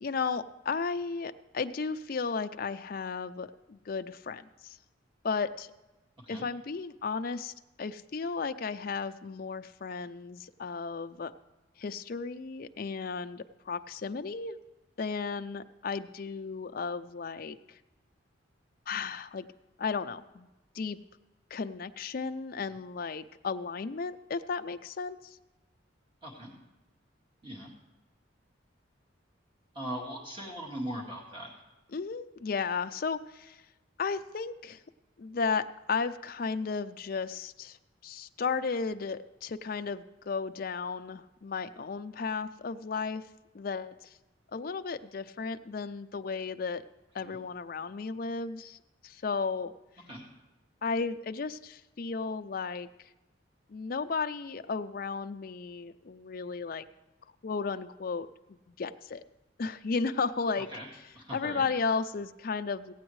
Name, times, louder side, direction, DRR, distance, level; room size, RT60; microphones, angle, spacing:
voice 1, 0.0-4.8 5.2-5.7 6.3-7.5 7.8-11.3 11.8-14.6 15.0-17.8 18.9-19.4 19.8-20.5 20.7-21.0 21.5-25.4 31.9-33.6 34.0-34.8 35.2-37.8 38.0-43.2 43.5-44.1 44.5-46.8 47.1-48.8 49.0-49.7 50.8-52.9 53.7-56.8 57.4-58.3 58.7-59.2 59.6-60.7 61.3-62.9, left 5 dB, 45° left, 9 dB, 0.4 m, -34 dB
voice 2, 29.7-31.5 47.2-47.4 50.1-50.2 60.6-60.9 61.2-61.7, right 1 dB, 25° right, -2 dB, 1.9 m, -39 dB
16.5 x 8.7 x 3.1 m, 1.1 s
head